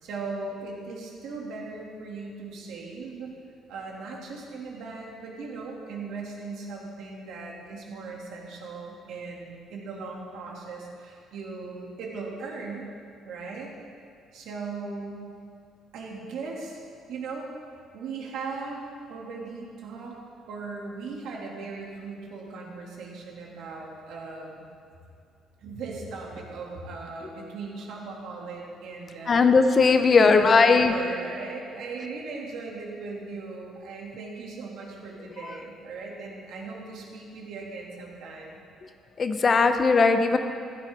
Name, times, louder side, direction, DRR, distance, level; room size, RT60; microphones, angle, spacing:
voice 1, 0.0-3.3 3.7-12.9 13.2-13.7 14.3-15.3 15.9-16.8 17.1-17.5 17.9-18.8 19.1-20.2 20.5-24.6 25.6-29.4 30.1-38.6, right 4 dB, 70° right, -2 dB, 2.4 m, -38 dB
voice 2, 29.3-30.9 39.2-40.4, left 4 dB, 30° left, 8 dB, 0.6 m, -18 dB
15.0 x 11.5 x 3.6 m, 2.3 s
cardioid pair, 145°, 0 cm